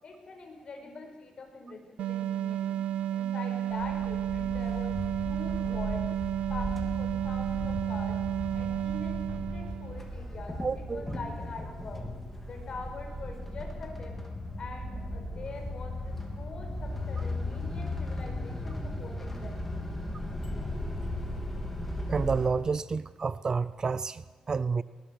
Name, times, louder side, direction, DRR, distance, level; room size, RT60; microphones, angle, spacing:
voice 1, 0.0-2.8 3.1-6.1 6.5-8.2 8.5-12.1 12.5-14.2 14.6-19.6, left 3 dB, 45° left, 5.3 m, -43 dB
sound 1, 2.0-10.1, right 11 dB, 85° right, 0.7 m, -32 dB
sound 2, 3.7-22.5, left 1 dB, 10° left, 3.5 m, -37 dB
voice 2, 10.6-11.0 22.1-24.8, right 5 dB, 35° right, 0.5 m, -30 dB
20.5 x 20.5 x 6.7 m
cardioid pair, 125°, 2 cm